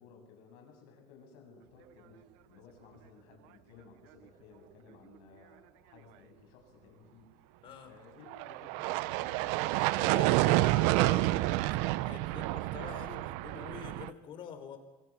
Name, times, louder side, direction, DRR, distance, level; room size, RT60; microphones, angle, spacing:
voice 1, 0.0-7.3 7.8-9.6, left 5 dB, 85° left, 3 dB, 7.6 m, -57 dB
sound 1, 8.3-14.1, right 18 dB, 90° right, 0.7 m, -29 dB
voice 2, 9.7-14.8, left 7 dB, 45° left, 8 dB, 3.8 m, -46 dB
26.0 x 25.0 x 6.2 m, 1.1 s
cardioid pair, 155°, 12 cm